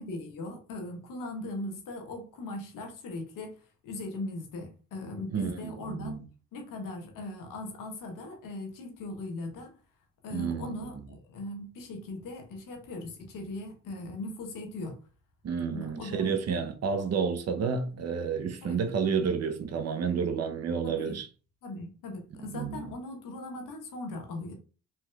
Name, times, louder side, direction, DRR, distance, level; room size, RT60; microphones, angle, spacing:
voice 1, 0.0-6.2 6.5-9.8 10.2-15.0 15.7-16.6 18.6-18.8 20.8-21.2 21.6-24.5, left 2 dB, 70° left, 1.0 m, -39 dB
voice 2, 5.3-6.2 10.3-10.9 15.4-21.3 22.4-22.9, right 6 dB, 50° right, 0.7 m, -30 dB
3.2 x 2.8 x 2.3 m
supercardioid pair, 55°, 34 cm